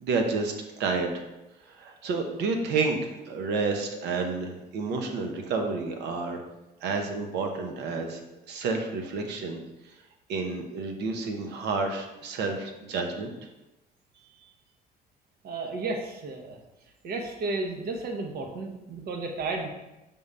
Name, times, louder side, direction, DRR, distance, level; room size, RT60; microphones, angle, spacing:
voice 1, 0.0-1.1 1.8-6.4 6.8-8.2 8.5-9.6 10.3-13.3, right 4 dB, 85° right, 4 dB, 0.9 m, -30 dB
voice 2, 15.4-16.6 17.0-19.7, right 3 dB, 65° right, 2 dB, 1.1 m, -33 dB
5.5 x 3.7 x 5.5 m, 0.98 s
cardioid pair, 110°, 17 cm